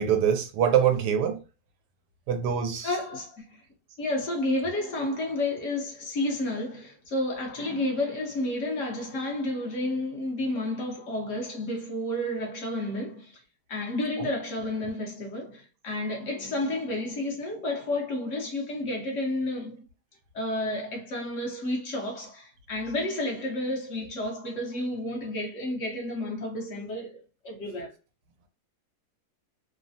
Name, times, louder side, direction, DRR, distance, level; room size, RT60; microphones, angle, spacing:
voice 1, 0.0-1.4 2.3-2.9 14.2-14.3, right 8 dB, 85° right, 1.2 m, -24 dB
voice 2, 2.8-3.6 4.0-13.4 13.7-19.8 20.3-27.9, left 1 dB, 60° left, 1.0 m, -31 dB
3.1 x 2.0 x 2.5 m
omnidirectional pair, 1.7 m